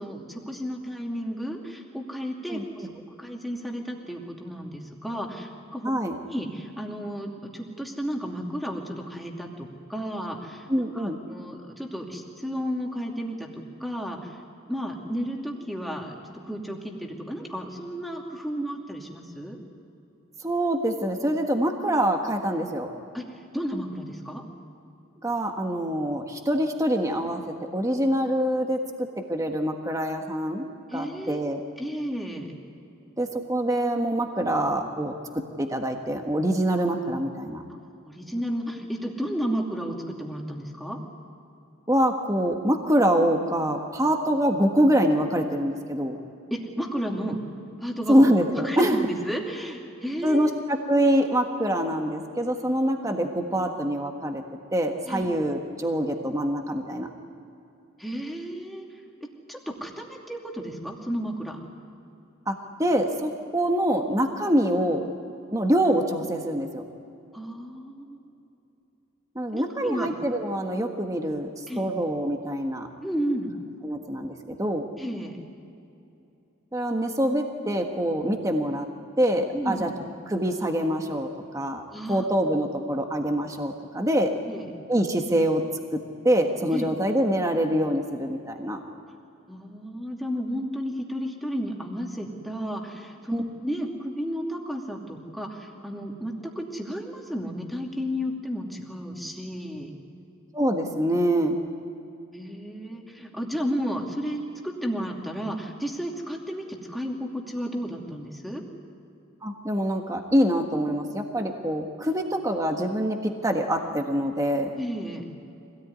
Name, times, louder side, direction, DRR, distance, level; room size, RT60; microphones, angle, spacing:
voice 1, 0.0-5.9 6.3-14.4 14.7-19.6 23.1-24.4 30.9-32.5 38.0-41.0 46.5-47.4 47.8-48.2 48.5-50.5 55.1-55.4 58.0-58.9 59.2-61.6 67.3-68.3 69.5-70.1 71.7-71.9 73.0-73.5 75.0-75.4 79.5-79.9 81.9-82.3 84.5-84.7 86.7-86.9 89.5-99.9 102.3-108.6 114.7-115.2, equal, ahead, 0 dB, 2.5 m, -33 dB
voice 2, 2.5-2.9 5.8-6.2 10.7-11.2 20.4-22.9 25.2-27.4 27.7-30.6 30.9-31.6 33.2-37.6 41.9-46.2 48.1-49.1 50.2-54.4 54.7-57.1 62.5-62.6 62.8-65.0 65.5-66.8 69.3-72.9 73.8-74.9 76.7-78.9 79.2-79.9 80.3-81.3 81.5-81.8 82.1-84.3 84.9-85.6 85.9-86.0 86.2-88.8 93.3-93.4 100.5-101.6 109.4-114.7, equal, 15° right, 3 dB, 1.5 m, -25 dB
25.5 x 18.0 x 9.6 m, 2.7 s
head